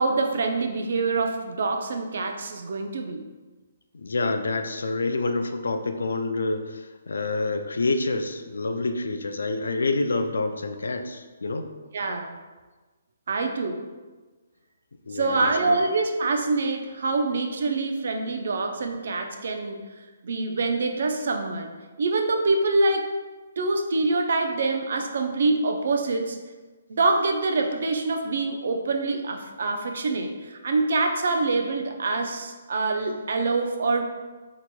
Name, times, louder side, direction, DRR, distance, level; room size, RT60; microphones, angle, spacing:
voice 1, 0.0-3.2 11.9-12.4 13.3-13.8 15.1-19.8 20.2-21.7 22.0-23.1 23.6-26.4 26.9-34.0, right 3 dB, 65° right, 4 dB, 0.4 m, -25 dB
voice 2, 3.9-11.7 15.1-15.8, left 3 dB, 90° left, 7 dB, 0.3 m, -27 dB
4.2 x 2.9 x 2.2 m, 1.3 s
hypercardioid pair, 155°, 0 cm